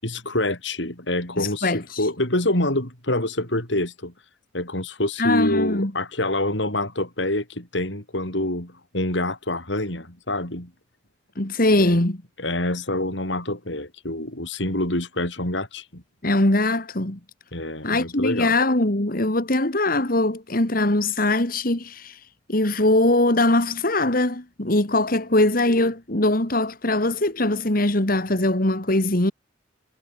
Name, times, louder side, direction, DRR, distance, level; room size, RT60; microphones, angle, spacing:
voice 1, 0.0-4.1 4.5-10.7 11.8-12.0 12.4-16.0 17.5-18.5, left 1 dB, 70° left, 6.7 m, -26 dB
voice 2, 1.4-2.1 5.2-5.9 11.4-12.2 16.2-17.2 17.8-22.2 22.5-29.3, left 2 dB, 50° left, 2.4 m, -21 dB
head